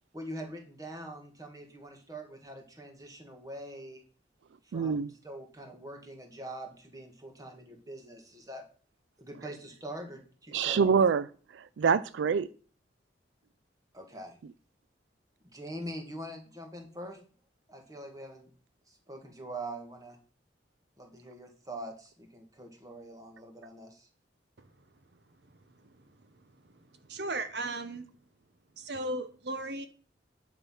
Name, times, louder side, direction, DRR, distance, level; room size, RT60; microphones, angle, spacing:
voice 1, 0.1-4.0 4.6-8.6 9.2-11.0 13.9-14.4 15.4-17.2 17.7-18.5 18.9-20.2 21.0-24.1, right 1 dB, 20° right, 4 dB, 1.7 m, -44 dB
voice 2, 4.7-5.1 10.5-12.5, right 6 dB, 75° right, 17 dB, 0.4 m, -26 dB
voice 3, 27.0-28.1 28.8-29.9, right 2 dB, 60° right, 10 dB, 0.9 m, -36 dB
10.0 x 6.0 x 5.7 m, 0.41 s
head